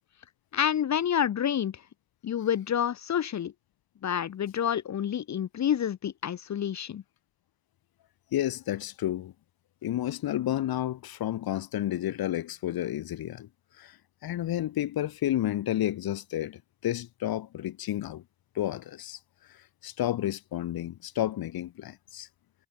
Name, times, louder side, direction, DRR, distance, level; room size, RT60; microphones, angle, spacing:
voice 1, 0.5-1.7 2.2-3.5 4.0-7.0, left 9 dB, 45° left, 1.2 m, -28 dB
voice 2, 8.3-9.3 9.8-13.5 13.8-14.0 14.2-18.2 18.5-19.2 19.8-22.3, left 13 dB, 65° left, 4.2 m, -31 dB
hypercardioid pair, 60°, 39 cm